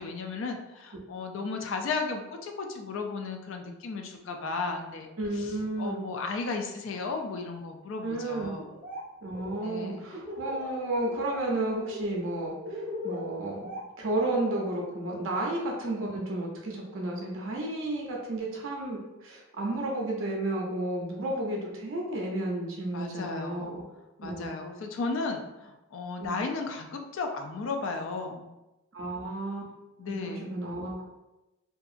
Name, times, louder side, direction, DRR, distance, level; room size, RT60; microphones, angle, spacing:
voice 1, 0.0-5.1 5.4-5.5 5.8-8.7 9.6-10.0 22.9-23.8 24.2-28.5 30.0-30.6, left 4 dB, 60° left, 4 dB, 0.4 m, -34 dB
voice 2, 5.2-6.0 8.0-8.5 9.2-13.7 14.0-23.8 24.2-24.5 26.2-26.3 28.9-29.7 30.1-31.0, right 1 dB, 65° right, -1 dB, 0.5 m, -32 dB
Laughter, 8.6-9.0 9.3-10.7 11.1-11.4 11.8-14.6, left 1 dB, 10° right, 0.6 m, -39 dB
2.7 x 2.3 x 2.4 m, 0.99 s
head